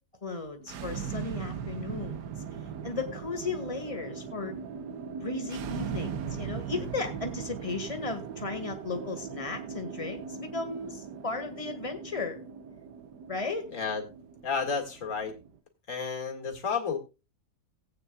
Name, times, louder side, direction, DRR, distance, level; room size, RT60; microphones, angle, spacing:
voice 1, 0.2-2.4 2.8-4.5 5.2-12.4 13.3-13.7, left 3 dB, 20° left, 6 dB, 1.7 m, -35 dB
sound 1, 0.6-15.6, right 7 dB, 85° right, 1.4 m, -39 dB
voice 2, 13.7-14.0 14.4-15.3 15.9-17.0, left 5 dB, 50° left, 4 dB, 2.3 m, -31 dB
18.0 x 8.8 x 2.3 m, 0.28 s
omnidirectional pair, 1.8 m